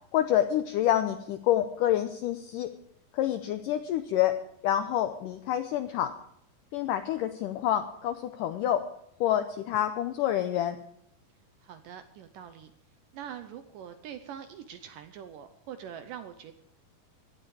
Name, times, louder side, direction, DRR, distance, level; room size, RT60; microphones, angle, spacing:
voice 1, 0.1-2.7 3.1-6.2 6.7-8.9 9.2-10.8, left 11 dB, 90° left, 8 dB, 1.9 m, -27 dB
voice 2, 11.6-12.7 13.1-16.5, right 9 dB, 75° right, 9 dB, 2.0 m, -43 dB
18.0 x 12.5 x 4.8 m, 0.73 s
omnidirectional pair, 4.6 m